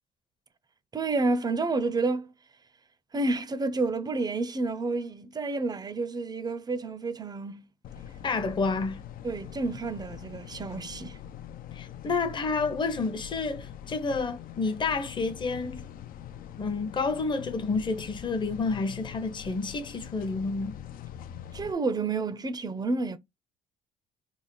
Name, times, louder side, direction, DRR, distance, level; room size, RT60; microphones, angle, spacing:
voice 1, 0.9-2.3 3.1-7.7 9.2-11.2 21.5-23.2, right 3 dB, 25° right, 0.5 m, -30 dB
sound 1, 7.8-21.7, left 10 dB, 55° left, 0.5 m, -43 dB
voice 2, 8.2-9.0 11.7-15.8 16.6-20.8, left 4 dB, 30° left, 0.8 m, -29 dB
3.5 x 2.1 x 3.8 m
cardioid pair, 110°, 17 cm